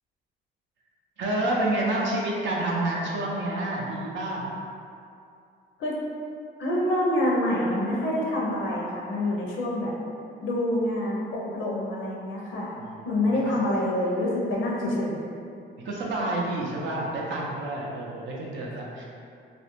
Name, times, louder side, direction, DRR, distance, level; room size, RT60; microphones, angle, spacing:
voice 1, 1.2-4.5 12.8-13.1 13.3-13.6 15.8-19.0, right 1 dB, 70° right, -3 dB, 0.5 m, -29 dB
voice 2, 6.6-9.9 10.4-12.7 13.0-15.2, left 1 dB, 80° left, -4 dB, 0.5 m, -26 dB
2.3 x 2.0 x 3.0 m, 2.4 s
cardioid pair, 90°, 20 cm